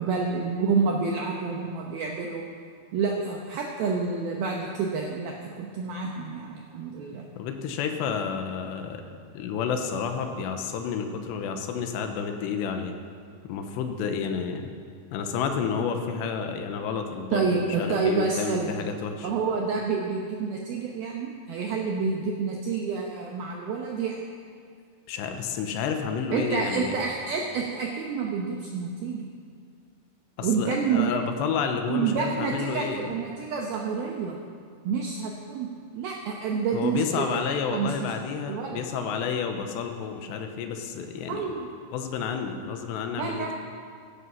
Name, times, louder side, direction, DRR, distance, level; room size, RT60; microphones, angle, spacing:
voice 1, 0.0-2.4 2.9-7.2 17.3-18.7 19.2-24.2 26.3-29.3 30.4-31.1 31.9-34.4 34.8-35.7 35.9-38.1 38.5-38.8 41.3-41.7 43.2-43.5, right 5 dB, 80° right, 0 dB, 2.2 m, -28 dB
voice 2, 7.4-12.9 13.5-14.7 15.1-19.3 25.1-26.9 30.4-33.1 36.7-41.5 41.9-43.5, left 6 dB, 75° left, 5 dB, 2.9 m, -30 dB
16.0 x 13.0 x 5.7 m, 2.2 s
omnidirectional pair, 5.7 m